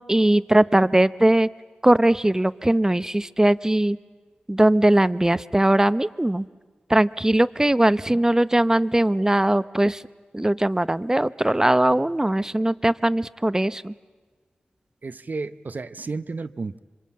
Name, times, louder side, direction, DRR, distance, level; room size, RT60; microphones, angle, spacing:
voice 1, 0.0-1.5 1.8-4.0 4.5-6.5 6.9-10.0 10.3-13.9, right 1 dB, 15° right, 16 dB, 0.8 m, -20 dB
voice 2, 15.0-16.8, right 3 dB, 60° right, 12 dB, 0.8 m, -32 dB
27.0 x 25.0 x 8.7 m, 1.4 s
cardioid pair, 55°, 3 cm